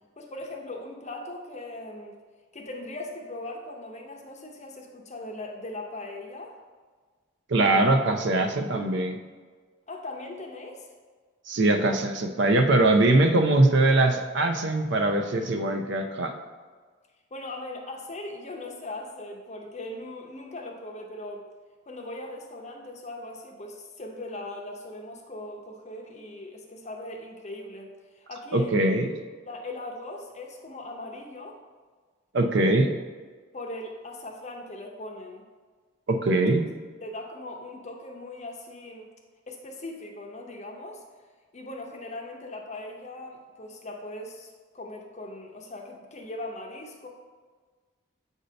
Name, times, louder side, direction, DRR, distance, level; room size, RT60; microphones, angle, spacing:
voice 1, 0.2-2.2 2.5-6.6 9.9-10.9 17.3-21.5 21.9-29.0 29.5-31.6 33.5-35.4 36.3-36.6 37.0-39.1 39.5-41.0 41.5-47.1, left 2 dB, 35° left, 1 dB, 0.7 m, -39 dB
voice 2, 7.5-9.2 11.5-16.3 28.5-29.1 32.3-32.9 36.1-36.7, right 2 dB, 55° right, 6 dB, 0.5 m, -22 dB
7.7 x 2.7 x 5.1 m, 1.5 s
head